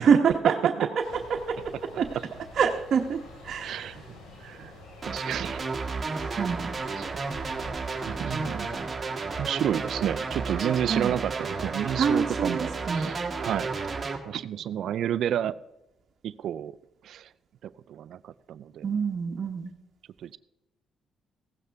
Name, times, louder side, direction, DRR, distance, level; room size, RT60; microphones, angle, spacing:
voice 1, 0.0-2.1 2.5-3.9 6.3-6.7 10.9-11.1 12.0-13.1 18.8-19.7, right 6 dB, 55° right, 1 dB, 1.1 m, -26 dB
sound 1, 1.0-8.8, left 2 dB, 80° left, 4.8 m, -47 dB
voice 2, 3.6-4.0 4.4-4.7 5.1-5.6 6.0-6.2 7.0-7.1 8.1-8.7 9.4-13.7 14.3-15.6 16.2-16.7 17.0-17.3 17.6-18.8 20.2-20.4, right 10 dB, 70° right, 15 dB, 0.4 m, -31 dB
sound 2, 5.0-14.2, right 4 dB, 30° right, 1.6 m, -32 dB
16.0 x 13.0 x 3.5 m, 0.93 s
cardioid pair, 90°, 0 cm